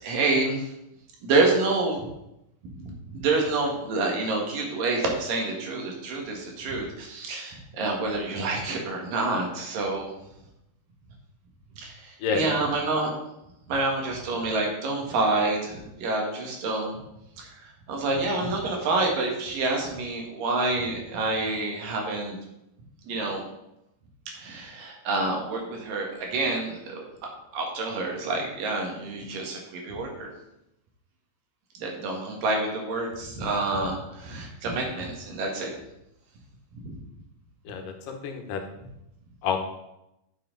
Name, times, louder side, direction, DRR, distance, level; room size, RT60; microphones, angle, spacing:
voice 1, 0.0-0.7 1.2-2.1 2.6-10.1 11.8-13.1 13.7-17.0 17.4-17.5 17.9-22.4 23.1-23.4 24.3-27.0 27.5-30.3 31.8-35.7 36.8-37.0, right 3 dB, 90° right, 1 dB, 3.5 m, -28 dB
voice 2, 37.7-38.6 39.4-39.6, left 5 dB, 85° left, 4 dB, 2.8 m, -29 dB
10.5 x 7.0 x 3.9 m, 0.85 s
omnidirectional pair, 3.8 m